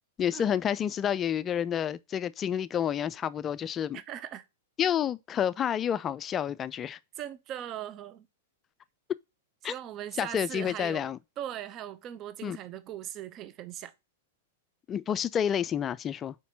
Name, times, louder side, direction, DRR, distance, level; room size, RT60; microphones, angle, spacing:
voice 1, 0.2-4.0 4.8-7.0 9.6-9.7 10.2-11.2 12.4-12.6 14.9-16.4, left 9 dB, 25° left, 0.3 m, -29 dB
voice 2, 3.9-4.4 7.2-8.3 9.6-11.1 11.4-13.9, right 11 dB, 30° right, 0.6 m, -39 dB
5.0 x 4.2 x 5.7 m
figure-of-eight pair, 100°, 0 cm